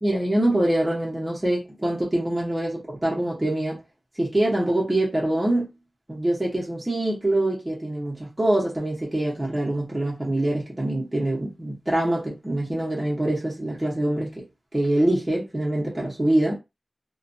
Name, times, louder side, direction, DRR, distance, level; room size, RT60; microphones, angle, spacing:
voice 1, 0.0-3.8 4.2-5.7 6.1-14.4 14.7-16.5, right 1 dB, 20° right, 0.9 m, -24 dB
2.5 x 2.2 x 2.6 m
wide cardioid pair, 100°, 0 cm